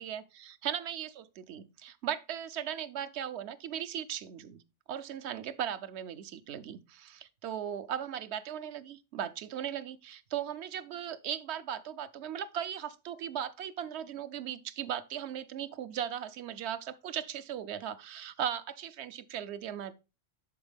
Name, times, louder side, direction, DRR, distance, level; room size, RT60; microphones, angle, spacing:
voice 1, 0.0-4.6 4.9-19.9, right 9 dB, 70° right, 0.8 m, -38 dB
10.5 x 4.0 x 3.4 m
omnidirectional pair, 1.2 m